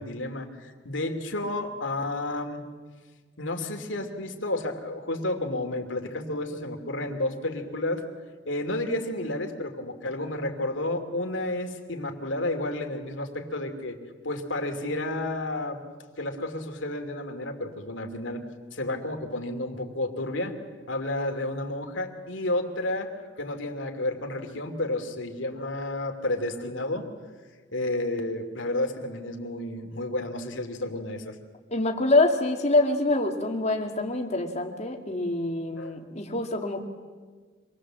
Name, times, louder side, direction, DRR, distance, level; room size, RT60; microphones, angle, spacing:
voice 1, 0.0-2.7 3.4-8.0 8.4-14.0 14.2-15.8 16.2-18.4 18.7-20.6 20.9-27.1 27.7-31.4 35.8-36.0, left 1 dB, 85° left, 4 dB, 2.7 m, -31 dB
voice 2, 31.7-36.8, left 2 dB, 35° left, 3 dB, 2.5 m, -25 dB
26.5 x 20.0 x 7.6 m, 1.5 s
head